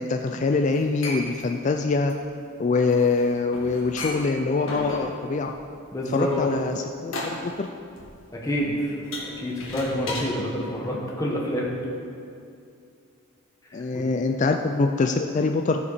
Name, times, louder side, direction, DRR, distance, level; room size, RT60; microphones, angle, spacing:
voice 1, 0.0-2.1 2.6-5.5 6.1-7.7 13.7-15.9, left 3 dB, 35° left, 4 dB, 0.3 m, -24 dB
sound 1, 0.7-10.3, left 2 dB, 75° left, 1.7 m, -36 dB
voice 2, 5.9-6.5 8.3-9.0 9.2-11.7 13.7-14.0, equal, 15° left, -3 dB, 1.4 m, -28 dB
15.0 x 5.8 x 4.2 m, 2.5 s
head